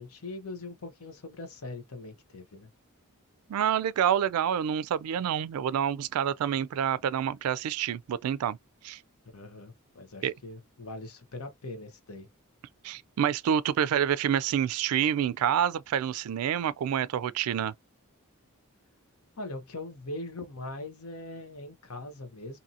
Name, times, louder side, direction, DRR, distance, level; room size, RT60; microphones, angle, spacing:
voice 1, 0.0-2.7 9.3-12.3 19.4-22.6, left 2 dB, 80° left, 0.9 m, -41 dB
voice 2, 3.5-8.6 8.8-9.0 10.2-10.3 12.8-17.7, right 9 dB, 80° right, 0.3 m, -27 dB
2.7 x 2.7 x 2.4 m
head